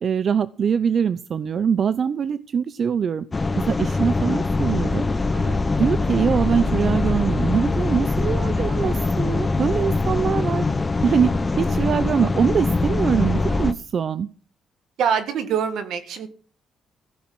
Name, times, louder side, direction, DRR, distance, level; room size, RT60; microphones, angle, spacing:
voice 1, 0.0-3.2 3.6-5.1 5.8-10.7 11.0-14.3, right 7 dB, 50° right, 15 dB, 0.6 m, -23 dB
sound 1, 3.3-13.7, left 3 dB, 25° left, 1.0 m, -22 dB
voice 2, 15.0-16.3, right 7 dB, 75° right, 10 dB, 1.9 m, -25 dB
15.0 x 6.4 x 7.8 m, 0.42 s
cardioid pair, 90°, 0 cm